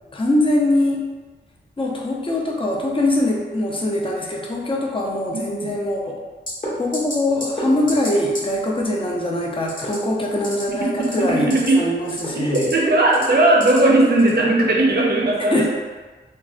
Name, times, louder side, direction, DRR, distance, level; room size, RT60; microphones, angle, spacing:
voice 1, 0.1-1.1 1.8-6.2 6.8-11.5 11.7-12.7 15.5-15.7, left 1 dB, 25° left, -1 dB, 0.5 m, -22 dB
voice 2, 5.3-5.7 11.5-11.8 12.3-15.7, right 2 dB, 55° right, -3 dB, 0.6 m, -17 dB
sound 1, 6.5-6.7 6.9-7.1 7.4-7.6 7.9-8.1 8.3-8.4 9.6-9.9 10.3-10.6 11.0-11.7 12.0-12.7 13.1-13.8 14.2-14.4, left 1 dB, 45° left, 1.1 m, -30 dB
3.2 x 2.0 x 2.5 m, 1.3 s
cardioid pair, 60°, 19 cm